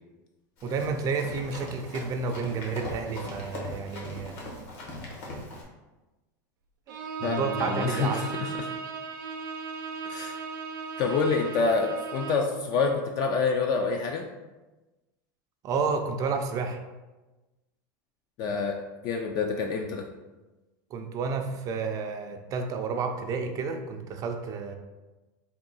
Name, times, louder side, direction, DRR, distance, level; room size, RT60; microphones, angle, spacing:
Run, 0.6-5.6, left 2 dB, 60° left, 1.1 m, -40 dB
voice 1, 0.6-4.4 6.9-7.0 7.2-8.2 15.6-16.8 20.9-24.7, right 5 dB, 35° right, 5 dB, 0.4 m, -30 dB
Bowed string instrument, 6.9-12.6, right 4 dB, 90° right, 0.5 m, -36 dB
voice 2, 7.2-8.7 10.1-10.4 11.0-14.3 18.4-20.1, left 4 dB, 40° left, 3 dB, 0.4 m, -27 dB
3.7 x 2.2 x 3.9 m, 1.1 s
supercardioid pair, 135°, 10 cm